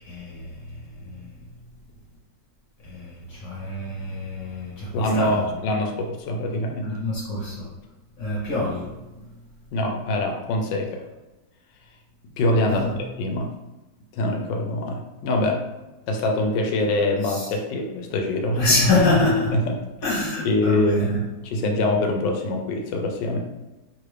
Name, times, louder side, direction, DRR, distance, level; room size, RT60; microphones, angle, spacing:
voice 1, 0.0-1.3 2.8-5.5 6.8-7.7 8.2-9.0 12.7-13.0 17.2-17.5 18.6-19.7 20.0-21.2, left 2 dB, 55° left, -6 dB, 1.1 m, -25 dB
voice 2, 4.9-6.9 9.7-11.0 12.4-13.5 14.1-15.6 16.1-18.6 19.5-19.6 20.4-23.4, left 2 dB, 80° left, 2 dB, 1.2 m, -24 dB
2.9 x 2.5 x 3.2 m, 1.1 s
omnidirectional pair, 2.0 m